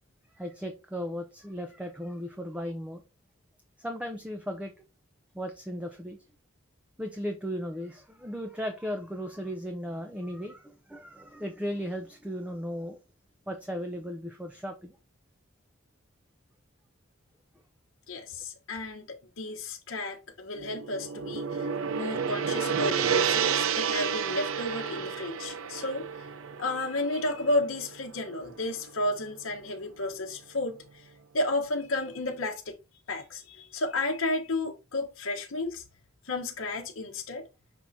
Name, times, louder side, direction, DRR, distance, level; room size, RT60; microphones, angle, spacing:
voice 1, 0.3-3.0 3.8-4.7 5.3-6.2 7.0-13.0 13.5-15.0, equal, 5° right, 0.6 m, -36 dB
voice 2, 18.1-26.3 26.6-32.8 33.1-35.8 36.2-37.5, left 2 dB, 65° left, 1.0 m, -32 dB
Gong, 20.5-28.9, right 7 dB, 65° right, 0.5 m, -31 dB
6.1 x 3.7 x 4.1 m
head